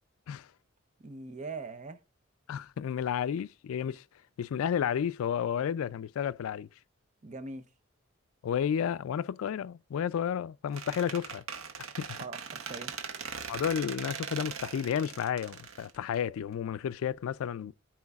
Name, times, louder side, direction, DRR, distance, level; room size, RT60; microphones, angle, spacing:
voice 1, 1.0-2.0 7.2-7.7 12.2-12.9, right 3 dB, 35° right, 0.7 m, -41 dB
voice 2, 2.5-4.0 4.4-6.7 8.4-11.4 12.0-12.2 13.5-17.7, left 8 dB, 85° left, 0.3 m, -32 dB
Squeak, 10.7-16.5, right 6 dB, 80° right, 0.8 m, -40 dB
13.5 x 4.5 x 2.3 m
head